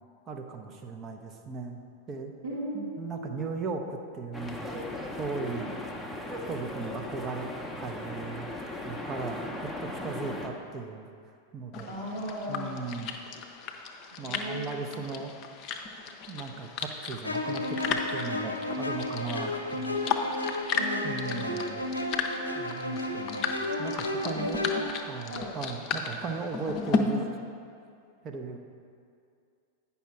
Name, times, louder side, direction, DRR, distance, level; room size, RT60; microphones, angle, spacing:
voice 1, 0.3-1.8 2.1-2.3 2.7-4.8 5.2-5.7 6.5-7.5 7.8-8.5 8.8-11.1 11.5-11.9 12.5-13.2 14.2-15.3 16.3-20.0 21.0-21.8 22.5-24.7 25.1-27.3 28.2-28.6, right 4 dB, 30° right, 3 dB, 0.8 m, -37 dB
voice 2, 2.4-3.5 5.5-5.7 11.8-12.8 14.1-14.7 20.7-21.8 24.2-24.3 25.2-25.5, equal, 70° right, -7 dB, 1.3 m, -37 dB
sound 1, 4.3-10.5, left 2 dB, 5° left, 0.8 m, -37 dB
sound 2, 11.7-27.0, left 5 dB, 35° left, 0.6 m, -35 dB
sound 3, 17.2-24.9, left 2 dB, 85° left, 0.6 m, -33 dB
9.2 x 5.7 x 4.4 m, 2.4 s
figure-of-eight pair, 90°, 0 cm